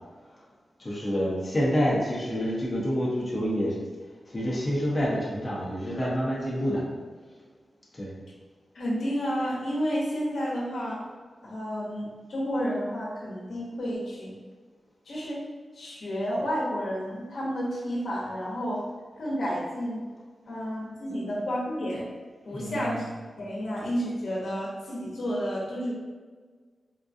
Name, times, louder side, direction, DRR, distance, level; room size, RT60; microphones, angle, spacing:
voice 1, 0.8-3.7 4.3-6.8 7.9-8.1 21.1-21.2 22.5-23.0, equal, 25° left, -6 dB, 0.8 m, -28 dB
voice 2, 8.7-11.0 11.4-14.3 15.1-15.4 15.7-18.8 19.2-20.1 20.5-22.1 22.5-23.1 23.4-25.9, equal, 75° left, -5 dB, 0.8 m, -31 dB
3.6 x 2.2 x 2.5 m, 1.5 s
wide cardioid pair, 115°, 0 cm